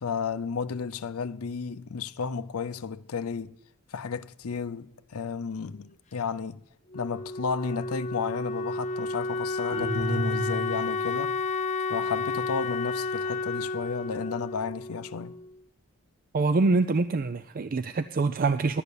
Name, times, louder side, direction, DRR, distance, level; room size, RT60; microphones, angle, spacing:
voice 1, 0.0-3.6 3.9-6.6 6.9-11.3 11.9-15.4, left 5 dB, 70° left, 0.5 m, -33 dB
Wind instrument woodwind instrument, 6.9-15.6, left 3 dB, 35° left, 0.6 m, -31 dB
sound 1, 9.7-11.2, right 1 dB, 15° right, 2.6 m, -31 dB
voice 2, 16.3-18.8, right 3 dB, 40° right, 0.4 m, -25 dB
11.5 x 8.2 x 6.9 m
head